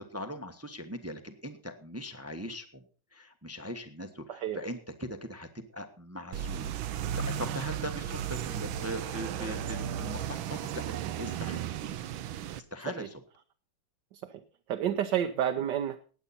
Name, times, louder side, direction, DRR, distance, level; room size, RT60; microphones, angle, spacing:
voice 1, 0.1-2.8 3.1-10.8 11.2-11.7 12.6-13.2 14.9-15.0, equal, 10° right, 7 dB, 0.8 m, -40 dB
sound 1, 6.3-12.6, right 9 dB, 80° right, 1.6 m, -35 dB
voice 2, 14.7-16.0, right 10 dB, 65° right, 6 dB, 1.5 m, -29 dB
19.0 x 8.4 x 4.2 m, 0.39 s
omnidirectional pair, 2.1 m